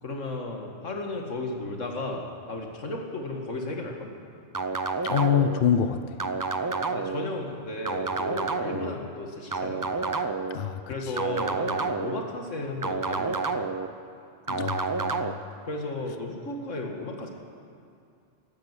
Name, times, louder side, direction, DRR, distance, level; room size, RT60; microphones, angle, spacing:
voice 1, 0.0-4.1 6.9-10.0 10.9-13.6 15.6-17.3, left 2 dB, 80° left, 1 dB, 2.2 m, -34 dB
sound 1, 4.5-5.6 6.2-7.2 7.9-8.9 9.5-10.6 11.2-12.2 12.8-13.9 14.5-15.3, right 4 dB, 30° right, 0.3 m, -29 dB
voice 2, 5.0-6.2 8.7-9.0 10.5-11.2 14.5-15.4, left 8 dB, 55° left, 9 dB, 0.8 m, -26 dB
14.5 x 11.5 x 8.1 m, 2.6 s
omnidirectional pair, 1.3 m